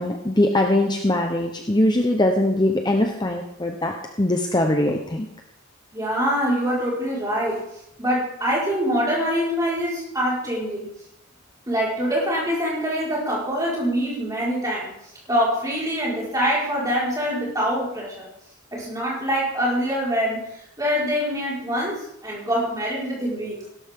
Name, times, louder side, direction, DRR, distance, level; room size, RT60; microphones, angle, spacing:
voice 1, 0.0-5.3, left 1 dB, 20° left, 2 dB, 0.9 m, -21 dB
voice 2, 5.9-7.6 8.0-10.9 11.7-14.9 15.3-18.3 18.7-20.4 20.8-23.6, equal, 15° right, -5 dB, 5.0 m, -24 dB
17.0 x 12.5 x 3.7 m, 0.82 s
head